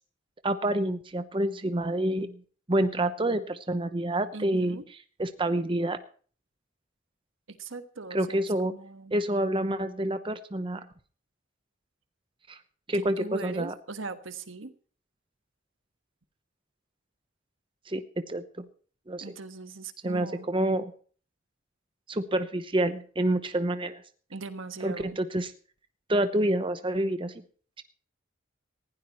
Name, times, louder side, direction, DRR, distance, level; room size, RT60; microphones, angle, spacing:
voice 1, 0.4-2.4 2.7-4.8 5.2-6.0 8.1-8.7 9.1-10.9 12.5-12.6 12.9-13.7 17.9-18.7 19.1-19.2 20.0-20.9 22.1-24.0 24.8-25.5 26.1-27.4 27.8-27.9, right 1 dB, 25° right, 10 dB, 0.9 m, -28 dB
voice 2, 4.3-4.9 7.5-9.1 12.9-14.7 19.2-20.5 24.3-25.2, right 3 dB, 75° right, 9 dB, 1.4 m, -40 dB
19.5 x 16.0 x 3.1 m, 0.42 s
head